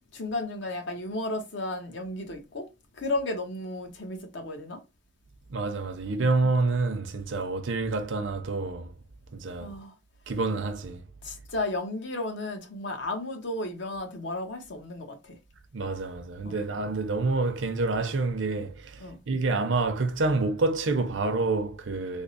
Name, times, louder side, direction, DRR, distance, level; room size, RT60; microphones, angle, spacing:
voice 1, 0.1-2.7 3.0-4.8 9.6-9.9 11.2-15.4 16.4-16.6 19.0-19.2, left 2 dB, 60° left, 0.8 m, -33 dB
voice 2, 5.5-8.9 9.3-9.7 10.3-11.0 15.7-22.2, right 3 dB, 70° right, 0.6 m, -28 dB
3.5 x 2.0 x 3.8 m
head